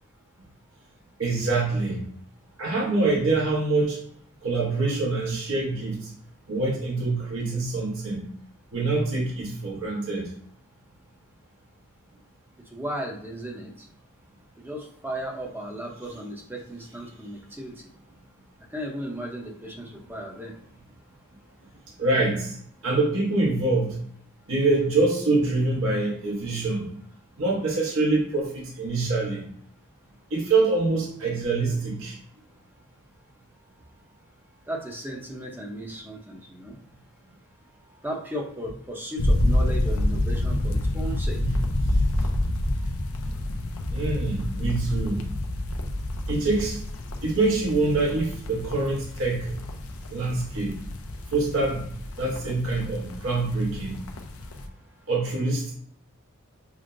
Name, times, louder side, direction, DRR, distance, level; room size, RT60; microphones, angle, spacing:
voice 1, 1.2-2.1 2.6-4.0 4.4-6.1 6.5-8.3 8.7-10.3 22.0-22.6 22.8-24.0 24.5-26.9 27.4-29.5 30.3-32.2 41.4-41.5 43.9-45.2 46.3-46.8 47.2-49.5 50.1-50.8 51.3-51.9 52.2-54.0 55.1-55.7, right 3 dB, 65° right, -3 dB, 0.9 m, -25 dB
voice 2, 12.7-13.7 14.6-17.7 18.7-20.5 34.7-36.8 38.0-41.4, right 1 dB, 10° right, -1 dB, 0.7 m, -35 dB
sound 1, 39.2-54.7, left 1 dB, 75° left, 0.5 m, -28 dB
6.0 x 2.1 x 2.5 m, 0.65 s
head